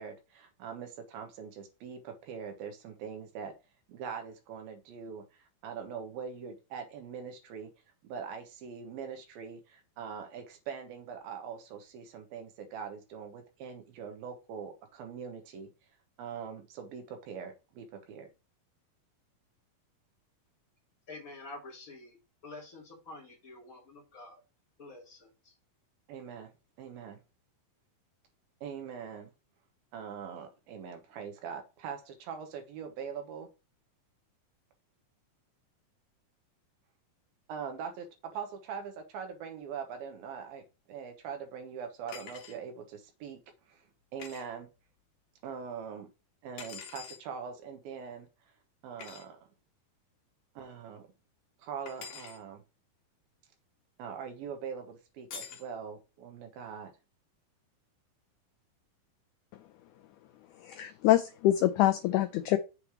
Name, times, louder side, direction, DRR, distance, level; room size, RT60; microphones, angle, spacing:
voice 1, 0.0-3.5 3.9-7.7 8.0-15.7 16.2-18.3 26.1-26.5 26.8-27.2 28.6-29.3 29.9-33.5 37.5-43.4 43.7-43.8 44.1-44.7 45.4-46.1 46.4-48.3 48.8-49.4 50.6-51.1 51.6-52.6 54.0-56.9, right 7 dB, 80° right, 3.0 m, -42 dB
voice 2, 21.1-22.2 22.4-24.4 24.8-25.5, left 2 dB, 35° left, 1.5 m, -48 dB
sound 1, 42.1-42.6 44.2-44.4 46.6-47.2 49.0-49.2 51.9-52.4 55.3-55.7, left 7 dB, 65° left, 2.6 m, -45 dB
voice 3, 60.6-62.6, left 14 dB, 85° left, 1.8 m, -25 dB
7.0 x 3.3 x 5.9 m
omnidirectional pair, 4.2 m